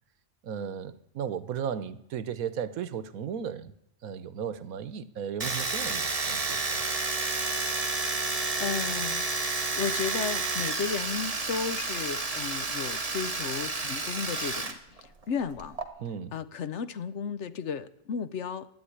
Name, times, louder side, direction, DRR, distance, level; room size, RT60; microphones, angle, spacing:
voice 1, 0.4-3.7 4.0-6.8 16.0-16.3, right 8 dB, 90° right, 15 dB, 1.3 m, -35 dB
Domestic sounds home sounds, 5.4-14.7 15.0-15.8, right 3 dB, 30° right, 1.3 m, -30 dB
voice 2, 8.3-9.2 9.7-15.8 16.3-18.7, left 6 dB, 60° left, 14 dB, 1.0 m, -34 dB
12.5 x 9.3 x 9.8 m, 0.76 s
omnidirectional pair, 1.4 m